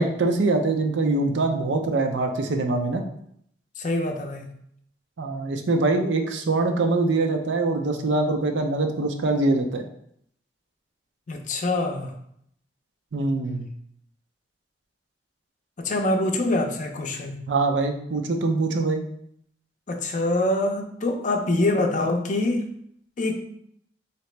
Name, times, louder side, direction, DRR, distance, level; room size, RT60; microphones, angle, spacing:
voice 1, 0.0-3.0 5.2-9.8 13.1-13.7 17.5-19.0, right 3 dB, 85° right, 4 dB, 0.5 m, -23 dB
voice 2, 3.8-4.5 11.3-12.1 15.8-17.4 19.9-22.7 23.2-23.4, left 2 dB, 45° left, 4 dB, 0.5 m, -25 dB
3.9 x 2.9 x 3.2 m, 0.71 s
head